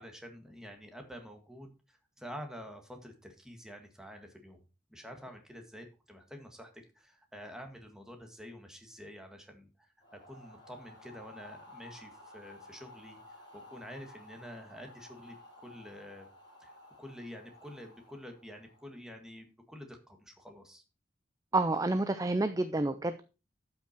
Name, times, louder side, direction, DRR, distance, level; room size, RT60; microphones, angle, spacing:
voice 1, 0.0-4.6 4.9-13.2 13.5-16.3 16.6-16.7 17.0-20.8, equal, 5° right, 4 dB, 1.7 m, -48 dB
sound 1, 10.0-19.1, left 1 dB, 25° left, 3.9 m, -54 dB
voice 2, 21.5-23.2, right 2 dB, 20° right, 11 dB, 0.4 m, -29 dB
12.5 x 5.9 x 4.4 m, 0.31 s
head